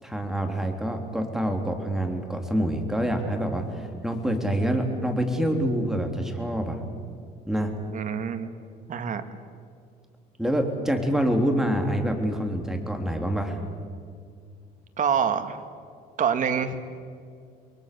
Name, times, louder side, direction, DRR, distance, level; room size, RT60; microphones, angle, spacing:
voice 1, 0.0-6.8 7.5-7.7 10.4-13.6, equal, 5° right, 3 dB, 3.7 m, -26 dB
voice 2, 7.9-8.5 8.9-9.2 15.0-15.6 16.2-16.8, right 7 dB, 50° right, 8 dB, 2.1 m, -26 dB
29.5 x 22.5 x 7.0 m, 2.2 s
cardioid pair, 110°, 17 cm